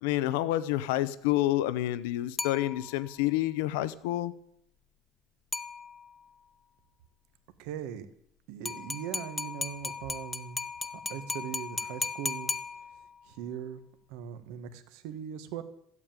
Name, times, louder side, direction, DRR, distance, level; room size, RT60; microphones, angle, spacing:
voice 1, 0.0-4.3, left 15 dB, 85° left, 15 dB, 0.8 m, -28 dB
sound 1, 2.4-3.2 5.5-6.3 8.7-13.3, left 4 dB, 15° left, 0.6 m, -36 dB
voice 2, 7.6-8.1 8.5-12.5 13.3-13.8 14.1-15.6, right 9 dB, 65° right, 10 dB, 1.4 m, -40 dB
14.0 x 8.5 x 8.9 m, 0.71 s
cardioid pair, 165°, 0 cm